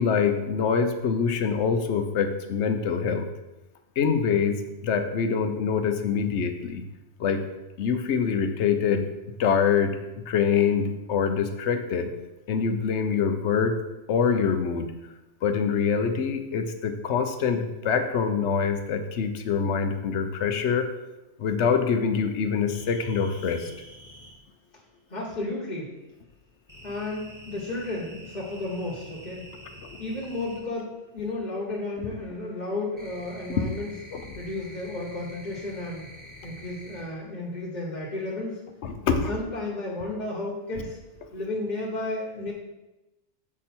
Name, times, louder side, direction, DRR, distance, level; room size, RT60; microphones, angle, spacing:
voice 1, 0.0-3.3 4.0-6.8 7.2-7.4 7.8-9.1 9.4-10.0 10.3-12.1 12.5-13.8 14.1-14.9 15.4-20.9 21.4-23.7 29.8-29.9 34.1-34.2 38.8-39.3, left 6 dB, 70° left, 7 dB, 1.0 m, -25 dB
sound 1, 22.7-24.3 26.7-30.6 32.0-37.3 37.6-38.1, equal, 15° right, 1.8 m, -47 dB
voice 2, 25.1-25.9 26.8-29.5 30.0-33.9 34.4-36.1 36.4-38.6 39.1-41.0 41.3-42.5, left 2 dB, 35° left, -5 dB, 1.3 m, -33 dB
7.4 x 4.9 x 4.3 m, 1.0 s
omnidirectional pair, 1.2 m